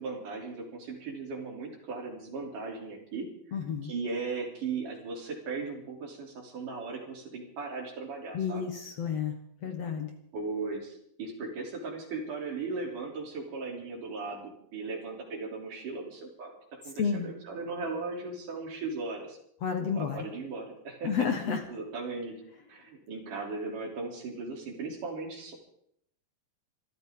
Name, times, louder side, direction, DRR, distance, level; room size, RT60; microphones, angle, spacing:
voice 1, 0.0-3.3 3.8-8.7 10.3-19.4 19.8-21.1 21.7-22.4 22.7-25.5, right 4 dB, 65° right, 0 dB, 4.8 m, -37 dB
voice 2, 3.5-3.9 8.3-9.3 9.6-10.1 17.0-17.3 19.6-20.2 21.0-21.6, left 6 dB, 60° left, 5 dB, 2.0 m, -30 dB
26.0 x 13.5 x 3.8 m, 0.70 s
omnidirectional pair, 4.0 m